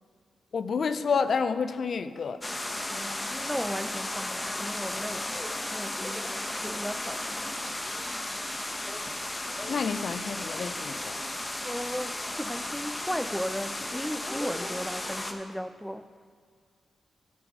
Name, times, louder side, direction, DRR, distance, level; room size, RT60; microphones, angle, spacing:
voice 1, 0.5-2.4 9.7-11.2, left 5 dB, 65° left, 12 dB, 0.4 m, -29 dB
sound 1, 2.4-15.3, left 1 dB, 25° left, 1.0 m, -34 dB
voice 2, 2.9-5.3 5.7-7.4 11.6-16.0, equal, ahead, 12 dB, 0.4 m, -36 dB
13.5 x 6.2 x 5.2 m, 2.1 s
cardioid pair, 60°, 0 cm